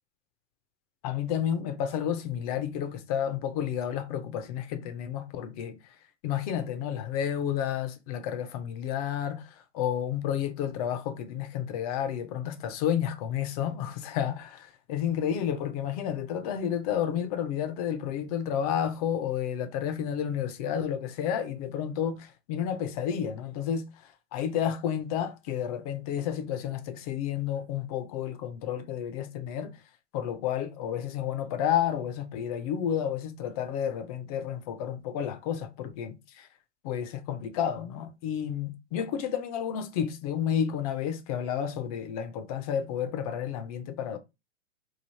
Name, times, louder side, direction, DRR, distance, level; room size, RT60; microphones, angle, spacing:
voice 1, 1.0-5.8 6.2-23.9 24.3-29.8 30.1-36.5 36.8-44.2, left 9 dB, 30° left, 0.5 m, -31 dB
3.1 x 2.3 x 4.3 m
hypercardioid pair, 125°, 38 cm